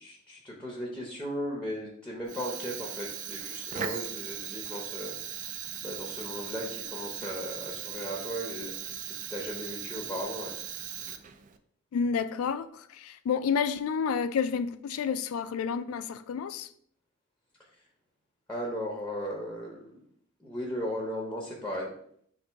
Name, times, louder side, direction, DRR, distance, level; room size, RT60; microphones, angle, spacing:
voice 1, 0.0-8.9 9.3-10.5 18.5-20.0 20.4-21.9, equal, 5° left, 0.6 m, -37 dB
Fire, 2.2-11.6, right 9 dB, 40° right, 0.3 m, -38 dB
voice 2, 11.9-16.7, left 6 dB, 85° left, 0.3 m, -30 dB
4.0 x 2.6 x 4.4 m
head